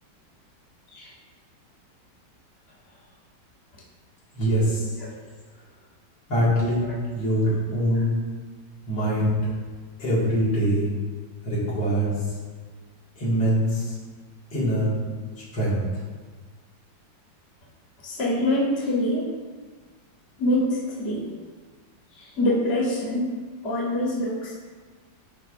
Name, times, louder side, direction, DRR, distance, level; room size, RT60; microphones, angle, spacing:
voice 1, 4.3-4.8 6.3-8.2 8.9-9.4 10.0-10.9 11.4-12.1 13.2-13.9 14.5-14.9 15.5-15.8, equal, 85° left, -8 dB, 2.7 m, -23 dB
voice 2, 18.0-19.3 20.4-21.2 22.1-23.3 23.6-24.5, left 1 dB, 35° left, -5 dB, 1.3 m, -25 dB
10.5 x 4.0 x 2.5 m, 1.5 s
omnidirectional pair, 2.1 m